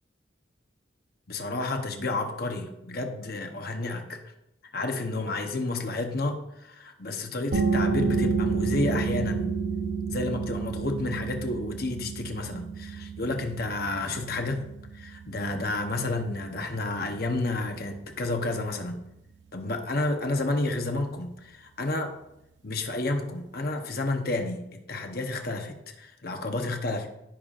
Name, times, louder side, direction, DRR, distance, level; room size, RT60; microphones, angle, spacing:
voice 1, 1.3-4.2 4.7-9.5 10.1-14.6 14.9-19.0 19.5-22.1 22.6-27.1, left 2 dB, 55° left, 4 dB, 0.9 m, -30 dB
sound 1, 7.5-18.9, right 5 dB, 75° right, 0.7 m, -31 dB
15.0 x 5.7 x 2.5 m, 0.86 s
head